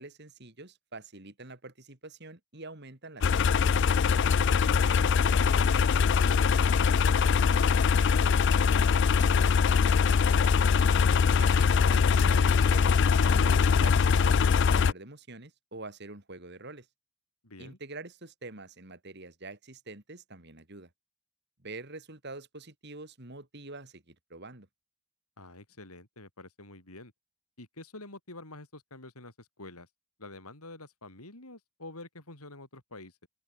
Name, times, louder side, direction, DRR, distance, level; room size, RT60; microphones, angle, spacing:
voice 1, 0.0-3.8 11.4-12.9 13.3-16.9 17.6-20.9 21.6-24.7, right 2 dB, 50° right, 3.1 m, -45 dB
sound 1, 3.2-14.9, left 6 dB, 55° left, 0.4 m, -22 dB
voice 2, 4.3-4.9 5.4-9.5 17.4-17.8 25.4-27.1 27.6-29.9 30.2-33.3, left 2 dB, 85° left, 7.1 m, -47 dB
open air
head